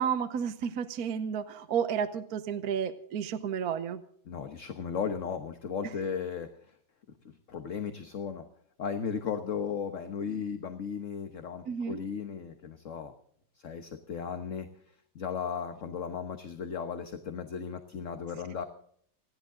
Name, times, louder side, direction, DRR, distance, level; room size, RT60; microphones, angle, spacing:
voice 1, 0.0-4.0 11.7-12.0, right 7 dB, 60° right, 10 dB, 1.2 m, -31 dB
voice 2, 4.3-6.8 7.2-8.5 8.8-13.1 13.5-18.6, left 6 dB, 45° left, 7 dB, 1.3 m, -36 dB
29.0 x 11.0 x 3.8 m, 0.63 s
omnidirectional pair, 2.0 m